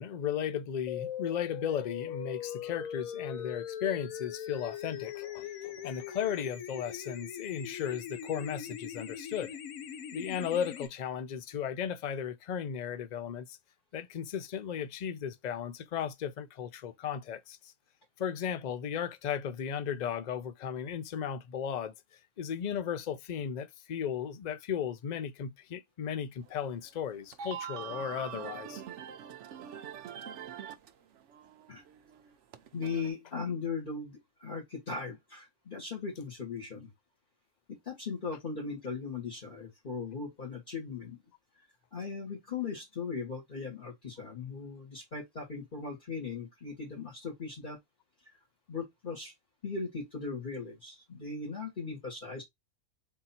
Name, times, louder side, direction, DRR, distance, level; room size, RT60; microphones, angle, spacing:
voice 1, 0.0-9.6 10.1-13.5 13.9-17.7 18.2-21.9 22.4-28.8, left 8 dB, 60° left, 0.4 m, -35 dB
sound 1, 0.9-10.9, left 9 dB, 80° left, 1.2 m, -41 dB
sound 2, 26.5-26.6 27.1-30.9 31.2-33.1, right 8 dB, 65° right, 0.9 m, -43 dB
voice 2, 32.7-36.9 37.7-41.2 41.9-47.8 48.2-48.4 48.7-49.3 49.6-52.4, left 5 dB, 35° left, 1.6 m, -38 dB
3.9 x 2.7 x 4.1 m
omnidirectional pair, 1.4 m